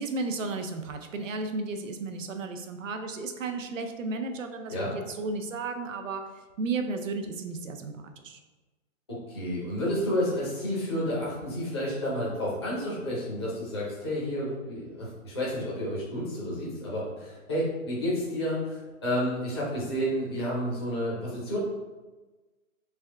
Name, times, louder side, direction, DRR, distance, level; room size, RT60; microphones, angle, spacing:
voice 1, 0.0-8.4, right 3 dB, 65° right, 6 dB, 0.6 m, -34 dB
voice 2, 9.3-21.6, equal, 20° left, -8 dB, 0.6 m, -30 dB
3.4 x 3.3 x 3.4 m, 1.2 s
hypercardioid pair, 175°, 42 cm